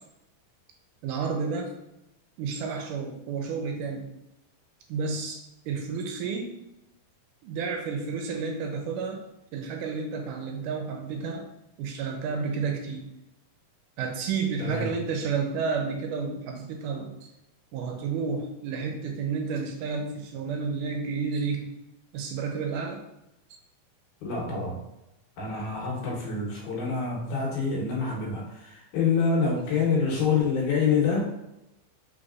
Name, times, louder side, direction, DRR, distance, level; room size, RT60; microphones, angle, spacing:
voice 1, 1.0-1.7 2.4-4.1 4.9-6.5 7.4-9.2 9.5-11.4 11.8-13.1 14.0-17.3 17.7-21.7 22.1-23.0, right 5 dB, 80° right, 3 dB, 2.0 m, -31 dB
voice 2, 14.6-14.9 24.2-24.8 25.4-31.3, left 5 dB, 75° left, -2 dB, 2.5 m, -26 dB
5.0 x 4.0 x 2.4 m, 0.88 s
omnidirectional pair, 3.8 m